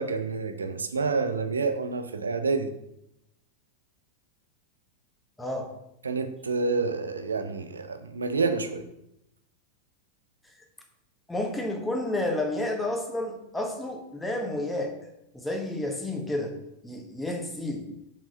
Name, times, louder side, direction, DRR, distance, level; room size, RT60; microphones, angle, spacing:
voice 1, 0.0-2.7 6.0-8.8, right 4 dB, 75° right, 9 dB, 0.7 m, -28 dB
voice 2, 5.4-5.7 11.3-14.9 15.3-16.6 16.8-17.9, left 1 dB, 5° left, 2 dB, 1.3 m, -30 dB
5.5 x 5.3 x 5.4 m, 0.83 s
figure-of-eight pair, 90°, 0 cm